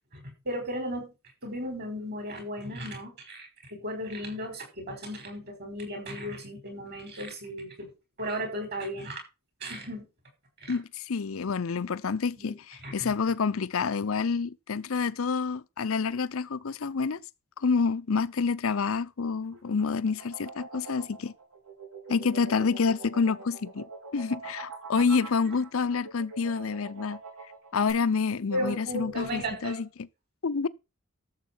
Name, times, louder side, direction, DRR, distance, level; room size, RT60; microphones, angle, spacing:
voice 1, 0.5-1.1 1.4-7.9 8.2-9.2 9.6-10.1 10.6-10.8 12.4-12.5 12.8-13.1 24.9-25.0 28.5-29.8, equal, 50° right, 5.6 m, -35 dB
voice 2, 10.7-17.2 17.6-21.3 22.1-23.9 24.1-27.2 27.7-29.9 30.4-30.7, left 5 dB, 70° left, 0.6 m, -28 dB
sound 1, 19.4-27.9, right 4 dB, 85° right, 7.0 m, -44 dB
13.5 x 7.3 x 4.5 m
head